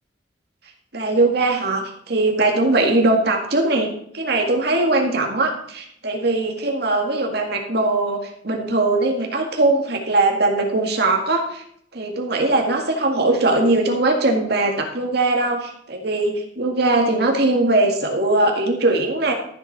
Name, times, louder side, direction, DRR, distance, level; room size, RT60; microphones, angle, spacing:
voice 1, 0.9-11.6 11.9-19.3, right 2 dB, 65° right, 2 dB, 2.0 m, -20 dB
14.0 x 7.4 x 4.2 m, 0.68 s
head